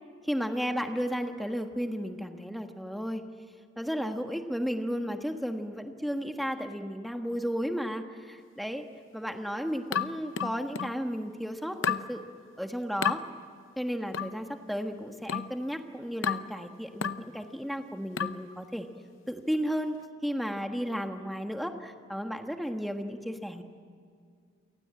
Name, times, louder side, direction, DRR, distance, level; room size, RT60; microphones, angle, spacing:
voice 1, 0.2-3.2 3.8-8.9 9.1-12.3 12.6-13.2 13.8-18.9 19.3-20.0 20.2-23.6, equal, ahead, 5 dB, 1.4 m, -33 dB
sound 1, 9.9-11.0 11.8-12.1 13.0-13.2 14.1-14.4 15.3-15.6 16.2-16.5 17.0-17.3 18.2-18.5, left 7 dB, 60° left, 0.8 m, -31 dB
28.5 x 19.0 x 8.8 m, 2.2 s
head